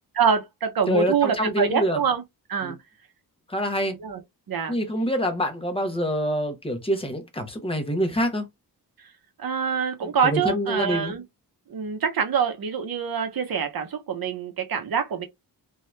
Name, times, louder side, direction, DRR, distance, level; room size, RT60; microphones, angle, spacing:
voice 1, 0.2-2.2 2.5-2.8 3.9-4.2 4.5-4.8 9.4-11.2 11.7-15.2, right 6 dB, 60° right, 0.8 m, -25 dB
voice 2, 0.9-2.0 2.6-2.8 3.5-3.9 4.7-8.4 10.2-11.1, equal, 15° left, 0.8 m, -26 dB
2.7 x 2.4 x 3.1 m
wide cardioid pair, 160°, 40 cm